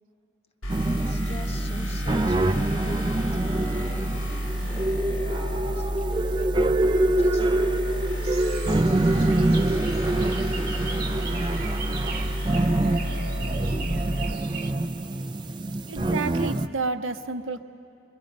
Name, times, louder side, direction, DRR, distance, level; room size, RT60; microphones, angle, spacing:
sound 1, 0.6-14.3, equal, 85° left, 1.3 m, -30 dB
sound 2, 0.7-16.7, right 2 dB, 20° right, 0.4 m, -26 dB
voice 1, 1.0-6.6 7.1-8.6, left 1 dB, 30° left, 7 dB, 0.8 m, -46 dB
sound 3, 8.2-14.7, right 6 dB, 50° right, 1.0 m, -40 dB
voice 2, 15.9-17.6, right 3 dB, 70° right, 8 dB, 0.7 m, -30 dB
24.5 x 22.5 x 5.3 m, 2.7 s
head